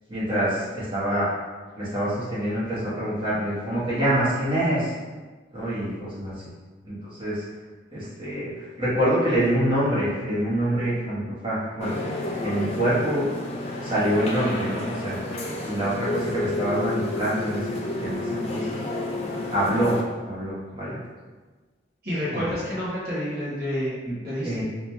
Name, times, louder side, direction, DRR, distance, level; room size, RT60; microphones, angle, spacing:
voice 1, 0.1-1.4 1.7-4.9 5.5-6.3 6.8-7.4 7.9-11.9 12.4-13.3 13.8-15.2 15.6-18.8 19.5-20.0 20.2-21.0 22.3-22.4 24.0-24.6, right 1 dB, 25° right, -10 dB, 1.3 m, -26 dB
sound 1, 11.8-20.2, left 2 dB, 35° left, 0.5 m, -31 dB
voice 2, 22.0-23.9 24.2-24.5, equal, 55° right, -9 dB, 1.0 m, -28 dB
4.9 x 2.9 x 2.3 m, 1.3 s
head